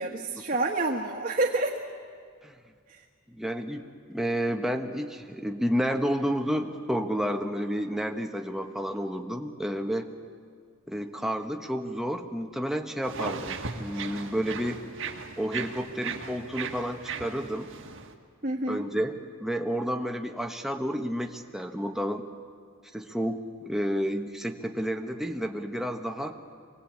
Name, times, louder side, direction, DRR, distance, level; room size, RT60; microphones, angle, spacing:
voice 1, 0.0-1.8 2.9-3.0 18.4-18.9, right 2 dB, 40° right, 0 dB, 1.6 m, -28 dB
voice 2, 3.3-10.1 10.9-14.8 15.4-17.7 18.7-22.3 22.9-26.4, equal, ahead, 3 dB, 1.2 m, -30 dB
sound 1, 13.0-18.1, right 5 dB, 60° right, 1.7 m, -37 dB
24.5 x 19.5 x 8.6 m, 2.1 s
head